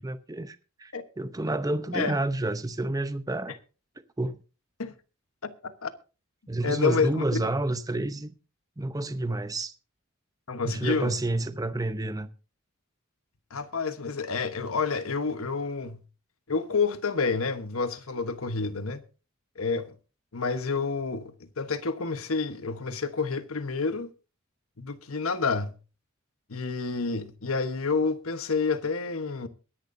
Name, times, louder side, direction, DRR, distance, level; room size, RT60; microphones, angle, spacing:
voice 1, 0.0-3.6 4.2-4.4 6.5-8.3 8.8-9.7 10.6-12.3, right 2 dB, 15° right, 0.7 m, -29 dB
voice 2, 5.4-5.9 6.6-7.5 10.5-11.2 13.5-16.0 16.5-19.0 19.6-19.9 20.3-24.1 24.8-25.7 26.5-29.5, left 4 dB, 85° left, 1.2 m, -29 dB
22.5 x 10.5 x 2.7 m
head